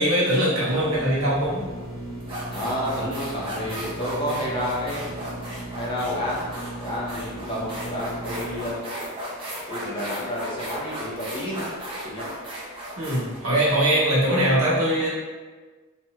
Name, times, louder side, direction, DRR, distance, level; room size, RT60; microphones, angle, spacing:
voice 1, 0.0-1.6 13.0-15.1, right 1 dB, 85° right, -5 dB, 0.9 m, -21 dB
sound 1, 0.7-8.7, right 1 dB, 70° left, 1.0 m, -37 dB
sound 2, 1.6-1.8 2.2-14.5, right 1 dB, 25° right, 0.6 m, -36 dB
voice 2, 2.5-5.3 5.7-9.0 9.7-11.7 12.0-12.3, equal, 25° left, -6 dB, 0.6 m, -30 dB
2.9 x 2.1 x 3.4 m, 1.4 s
head